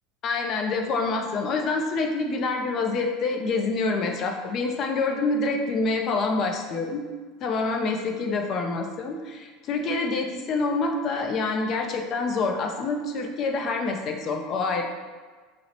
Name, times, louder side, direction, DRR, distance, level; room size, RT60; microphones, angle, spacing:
voice 1, 0.2-7.0 7.4-14.8, left 3 dB, 45° left, 3 dB, 0.4 m, -26 dB
4.0 x 2.0 x 2.9 m, 1.4 s
supercardioid pair, 125°, 0 cm